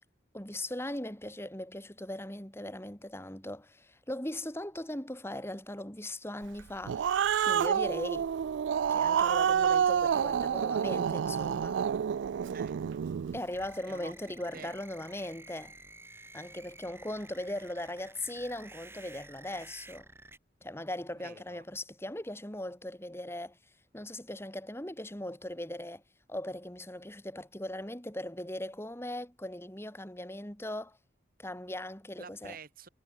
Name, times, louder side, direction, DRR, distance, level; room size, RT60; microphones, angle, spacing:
voice 1, 0.3-7.1 7.4-8.3 8.9-11.8 13.3-15.7 16.3-20.1 20.6-23.6 23.9-26.0 26.3-31.0 31.4-32.6, left 1 dB, 15° left, 3.0 m, -39 dB
Growling, 6.6-13.4, right 8 dB, 75° right, 0.3 m, -28 dB
voice 2, 12.5-13.1 13.9-14.7 21.2-21.6 32.2-32.9, right 4 dB, 50° right, 1.7 m, -49 dB
sound 1, 13.5-20.4, right 2 dB, 15° right, 3.9 m, -52 dB
head